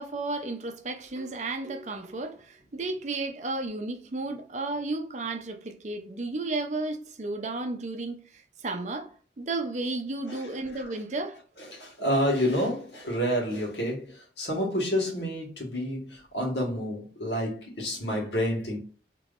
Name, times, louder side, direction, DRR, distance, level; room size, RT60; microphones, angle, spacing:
voice 1, 0.0-8.2 8.6-11.4, right 2 dB, 40° right, 0.5 m, -33 dB
voice 2, 11.6-18.8, equal, 70° left, 1.5 m, -29 dB
3.4 x 3.0 x 2.4 m
head